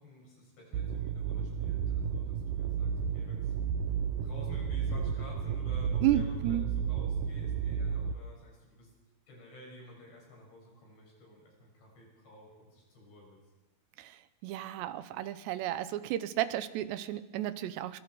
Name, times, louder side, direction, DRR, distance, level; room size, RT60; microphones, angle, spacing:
voice 1, 0.0-3.5 4.2-8.9 9.3-13.4, left 2 dB, 80° left, -1 dB, 9.4 m, -52 dB
sound 1, 0.7-8.1, right 7 dB, 70° right, 2.2 m, -32 dB
voice 2, 6.0-6.6 14.0-18.0, right 13 dB, 90° right, 13 dB, 3.1 m, -32 dB
25.5 x 24.5 x 4.9 m, 1.1 s
omnidirectional pair, 4.8 m